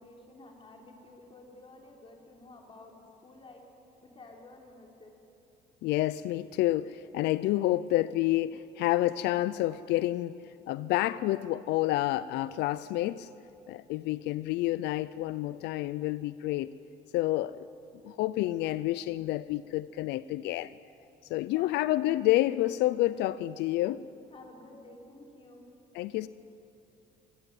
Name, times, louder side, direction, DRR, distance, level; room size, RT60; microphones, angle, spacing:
voice 1, 0.0-3.6 4.0-5.1 21.5-21.9 24.3-25.6, left 2 dB, 30° left, 0 dB, 5.2 m, -52 dB
voice 2, 5.8-13.3 13.7-16.7 17.1-17.7 18.0-20.7 21.2-24.0 25.9-26.3, left 15 dB, 85° left, 16 dB, 0.5 m, -29 dB
26.5 x 18.0 x 9.4 m, 2.8 s
cardioid pair, 110°, 17 cm